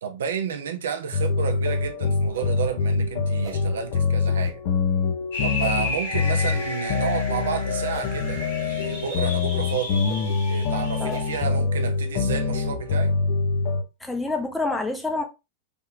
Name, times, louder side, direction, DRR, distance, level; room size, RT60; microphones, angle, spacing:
voice 1, 0.0-4.6 5.4-10.0 10.5-13.2, right 7 dB, 65° right, 0.5 m, -31 dB
sound 1, 1.1-13.8, left 4 dB, 50° left, 0.6 m, -25 dB
sound 2, 1.2-1.4 2.3-2.5 3.4-3.6 4.4-4.5 5.6-5.8 7.0-7.1 7.9-8.1 9.1-9.2 10.1-10.2 11.1-11.2, right 5 dB, 35° right, 0.8 m, -38 dB
sound 3, 5.3-11.4, left 2 dB, 65° left, 1.6 m, -33 dB
voice 2, 14.0-15.2, left 3 dB, 5° left, 0.6 m, -27 dB
3.4 x 2.7 x 2.4 m
figure-of-eight pair, 90°, 0 cm